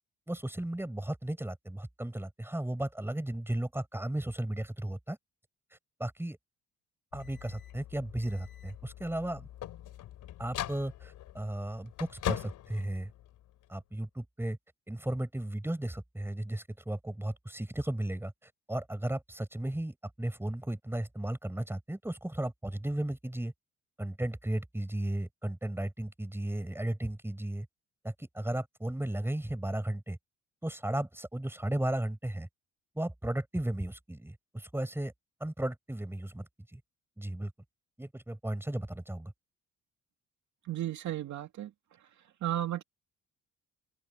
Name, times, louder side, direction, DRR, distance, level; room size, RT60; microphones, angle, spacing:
voice 1, 0.3-5.2 6.0-6.4 7.1-9.5 10.4-13.1 13.7-14.6 14.9-23.5 24.0-27.7 28.0-30.2 30.6-32.5 32.9-35.1 35.4-36.8 37.2-37.5 38.0-39.3, right 1 dB, 10° right, 6.9 m, -35 dB
sound 1, 7.1-13.7, left 12 dB, 80° left, 3.2 m, -41 dB
voice 2, 40.7-41.7 42.4-42.8, right 12 dB, 70° right, 2.4 m, -33 dB
open air
cardioid pair, 90°, 30 cm